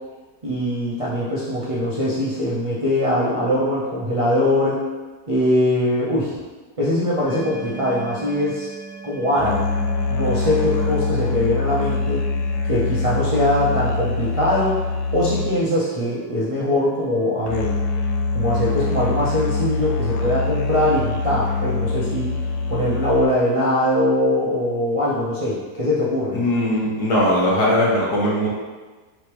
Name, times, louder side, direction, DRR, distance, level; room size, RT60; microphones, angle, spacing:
voice 1, 0.4-4.8 5.3-6.4 6.8-8.7 9.0-9.7 10.1-12.2 12.7-17.7 18.3-22.3 22.7-26.4, left 1 dB, 50° right, -9 dB, 0.4 m, -22 dB
sound 1, 7.3-23.3, left 3 dB, 90° left, 1.2 m, -25 dB
voice 2, 26.3-28.5, left 1 dB, 75° left, -5 dB, 1.7 m, -19 dB
4.9 x 3.3 x 3.0 m, 1.3 s
omnidirectional pair, 1.8 m